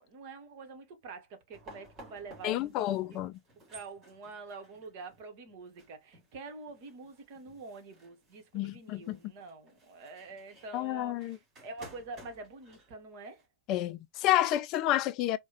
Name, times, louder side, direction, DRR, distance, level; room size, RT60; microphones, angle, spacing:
voice 1, 0.0-3.2 3.7-13.4, right 3 dB, 45° right, 1.1 m, -46 dB
sound 1, 1.5-13.4, right 1 dB, 25° right, 2.5 m, -56 dB
voice 2, 2.4-3.4 8.5-9.2 10.7-11.4 13.7-15.4, left 14 dB, 40° left, 0.3 m, -30 dB
4.6 x 2.2 x 2.8 m
figure-of-eight pair, 90°, 0 cm